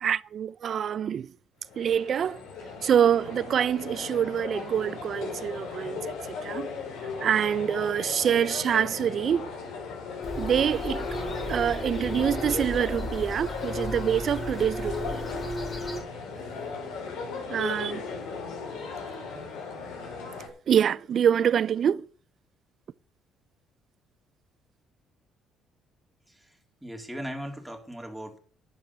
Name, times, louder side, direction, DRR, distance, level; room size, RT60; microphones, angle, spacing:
voice 1, 0.0-1.3 1.8-2.4 2.8-6.1 6.4-6.7 7.2-9.5 10.4-11.1 11.5-15.2 17.5-18.0 20.7-22.1, right 9 dB, 50° right, 0.5 m, -25 dB
sound 1, 1.6-20.5, left 5 dB, 85° left, 6.8 m, -37 dB
sound 2, 10.2-16.0, left 1 dB, 25° left, 5.8 m, -34 dB
voice 2, 26.8-28.4, equal, ahead, 3.4 m, -37 dB
11.0 x 10.5 x 7.0 m
cardioid pair, 135°, 0 cm